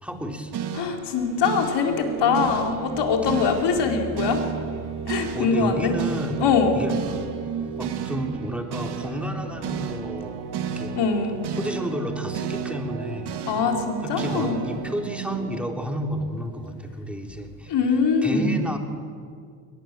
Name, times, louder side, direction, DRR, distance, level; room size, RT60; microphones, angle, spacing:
voice 1, 0.0-0.6 5.3-6.4 6.7-6.9 7.8-10.4 10.7-10.9 11.5-13.3 13.6-13.7 14.0-17.7 18.2-18.8, equal, ahead, 3 dB, 3.3 m, -31 dB
sound 1, 0.5-16.8, right 7 dB, 50° right, 2.1 m, -32 dB
voice 2, 0.7-4.4 5.1-5.9 6.4-6.8 11.0-11.4 13.5-14.6 17.7-18.5, left 5 dB, 55° left, 3 dB, 4.3 m, -23 dB
22.0 x 19.5 x 7.7 m, 2.2 s
hypercardioid pair, 75°, 50 cm